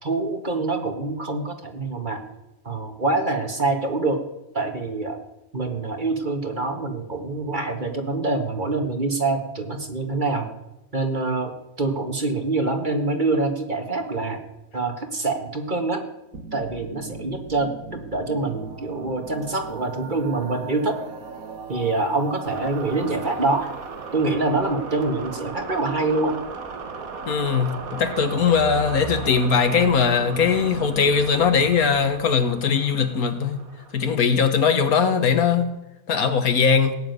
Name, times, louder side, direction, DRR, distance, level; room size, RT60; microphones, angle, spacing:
voice 1, 0.0-2.2 2.7-4.2 4.5-5.2 5.5-10.5 10.9-14.4 14.7-16.1 16.5-21.0 21.7-23.7 24.1-26.4, right 3 dB, 35° right, 1.9 m, -25 dB
sound 1, 16.3-34.8, right 4 dB, 75° right, 1.8 m, -37 dB
voice 2, 27.3-33.6 33.9-35.7 36.1-36.9, left 6 dB, 80° left, 1.8 m, -20 dB
17.5 x 7.5 x 9.4 m
omnidirectional pair, 1.5 m